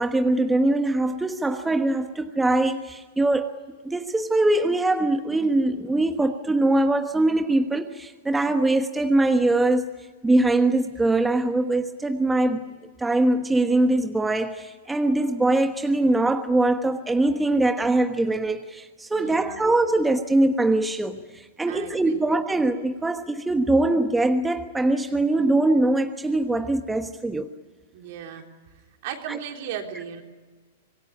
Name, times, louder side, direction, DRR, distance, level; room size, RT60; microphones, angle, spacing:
voice 1, 0.0-3.5 3.8-9.9 10.2-12.6 13.0-27.5 29.3-29.4, right 2 dB, 10° right, 7 dB, 1.2 m, -22 dB
voice 2, 19.1-19.7 21.7-22.2 27.9-28.4 29.0-30.2, right 9 dB, 60° right, 3 dB, 3.8 m, -36 dB
26.0 x 18.5 x 9.8 m, 1.4 s
hypercardioid pair, 125°, 0 cm